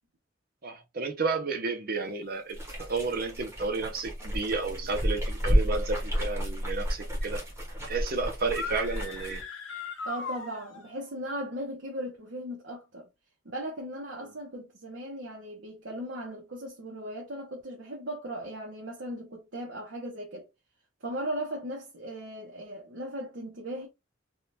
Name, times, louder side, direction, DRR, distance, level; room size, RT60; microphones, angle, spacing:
voice 1, 0.6-7.4 7.8-9.4, right 4 dB, 50° right, 0.7 m, -32 dB
sound 1, 2.5-9.4, equal, 15° right, 0.9 m, -31 dB
sound 2, 8.4-11.0, left 4 dB, 90° left, 1.0 m, -39 dB
voice 2, 10.0-13.1 13.4-20.4 21.0-23.9, right 1 dB, 75° right, 0.9 m, -37 dB
3.5 x 2.4 x 2.7 m
head